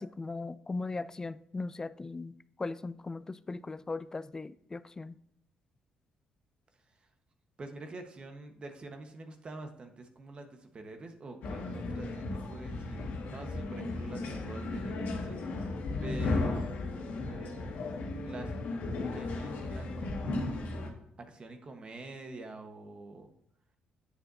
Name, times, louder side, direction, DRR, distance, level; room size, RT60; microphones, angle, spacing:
voice 1, 0.0-2.3 2.6-5.1, left 3 dB, 20° left, 0.3 m, -38 dB
voice 2, 7.6-15.4 16.0-16.7 17.3-17.8 18.2-18.5 19.1-20.8 21.2-23.3, right 2 dB, 35° right, 1.1 m, -46 dB
sound 1, 11.4-20.9, left 3 dB, 75° left, 1.7 m, -35 dB
9.7 x 8.1 x 2.7 m
cardioid pair, 105°, 3 cm